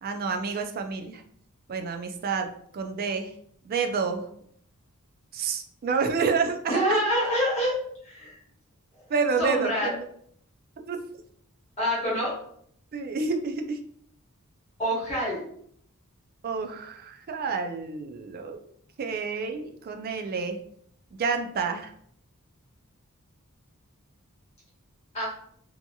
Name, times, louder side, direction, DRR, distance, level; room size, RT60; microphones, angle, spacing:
voice 1, 0.0-1.2 1.7-2.5 2.7-3.3 3.6-4.3 5.3-7.0 9.1-10.0 10.9-11.0 12.9-13.8 16.4-18.6 19.0-20.6 21.2-21.9, right 5 dB, 40° right, 5 dB, 0.3 m, -29 dB
voice 2, 6.7-7.8 8.0-8.3 9.4-10.0 11.8-12.3 14.8-15.4 25.1-25.2, equal, 30° left, -7 dB, 0.9 m, -26 dB
2.8 x 2.6 x 2.2 m, 0.65 s
head